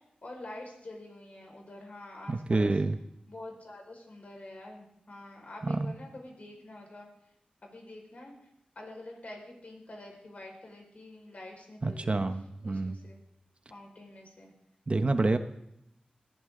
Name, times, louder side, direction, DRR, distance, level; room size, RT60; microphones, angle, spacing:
voice 1, 0.2-2.7 3.3-7.1 7.6-8.3 8.8-12.2 12.6-13.2 13.7-14.5, left 1 dB, 60° left, 0 dB, 5.3 m, -47 dB
voice 2, 2.3-3.0 5.6-5.9 11.8-13.0 14.9-15.4, right 2 dB, 45° right, 8 dB, 1.1 m, -28 dB
20.5 x 15.0 x 3.9 m, 0.79 s
wide cardioid pair, 80°, 3 cm